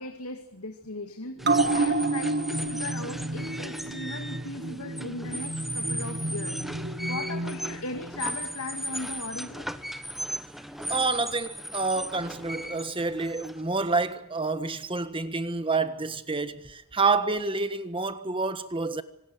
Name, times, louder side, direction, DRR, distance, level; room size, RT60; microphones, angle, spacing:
voice 1, 0.0-9.8, left 2 dB, 90° left, 2.4 m, -38 dB
sound 1, 1.4-14.1, equal, ahead, 1.2 m, -37 dB
sound 2, 1.4-8.3 8.7-8.8, right 2 dB, 50° right, 1.6 m, -30 dB
voice 2, 10.9-19.0, right 3 dB, 25° right, 1.5 m, -28 dB
26.0 x 19.5 x 7.8 m
head